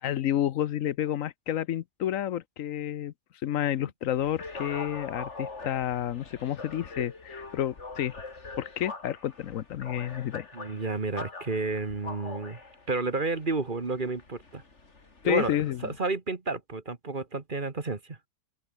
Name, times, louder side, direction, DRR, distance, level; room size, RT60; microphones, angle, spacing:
voice 1, 0.0-3.1 3.4-8.1 8.6-10.5 15.2-15.9, left 11 dB, 75° left, 1.1 m, -30 dB
sound 1, 4.1-16.0, left 3 dB, 55° left, 3.3 m, -43 dB
voice 2, 10.5-12.6 12.9-14.6 15.2-15.5 15.8-18.2, right 3 dB, 35° right, 1.8 m, -31 dB
open air
omnidirectional pair, 1.4 m